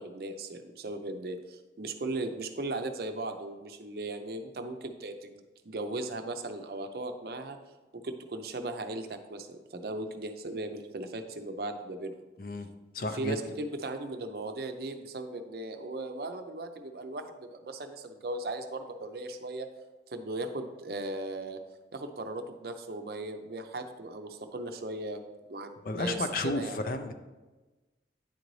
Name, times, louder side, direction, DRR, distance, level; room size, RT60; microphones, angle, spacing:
voice 1, 0.0-7.6 8.0-12.2 13.1-19.7 20.1-21.6 21.9-25.2 25.5-26.8, right 2 dB, 60° right, 6 dB, 0.6 m, -37 dB
voice 2, 12.9-13.4 25.8-27.1, left 2 dB, 50° left, 7 dB, 0.5 m, -32 dB
9.8 x 3.9 x 3.2 m, 1.2 s
head